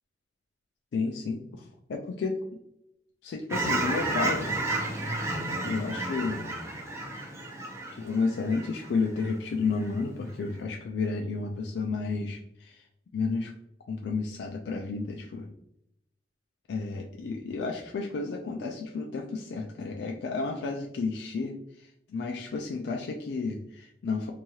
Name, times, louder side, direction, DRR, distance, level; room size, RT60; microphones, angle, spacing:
voice 1, 0.9-2.4 3.2-4.5 5.6-6.4 7.9-12.8 13.1-13.5 13.9-15.5 16.7-24.3, left 4 dB, 70° left, 2 dB, 0.3 m, -32 dB
Fowl / Chirp tweet, 3.5-9.3 9.7-10.0, right 2 dB, 15° right, 0.6 m, -32 dB
3.0 x 2.8 x 2.3 m, 0.80 s
head